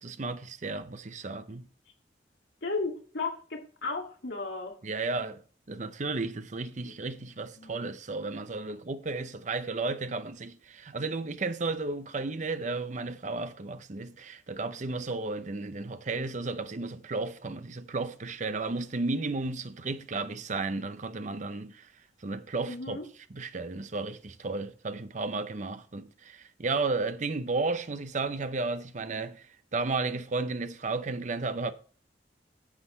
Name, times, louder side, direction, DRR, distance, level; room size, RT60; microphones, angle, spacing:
voice 1, 0.0-1.7 4.8-5.4 5.7-21.9 22.2-23.0 23.3-29.4 29.7-31.7, right 3 dB, 45° right, 0.7 m, -33 dB
voice 2, 2.6-4.8 6.8-6.9 7.6-7.8 22.7-23.1, left 3 dB, 75° left, 2.1 m, -35 dB
9.9 x 7.7 x 3.2 m
head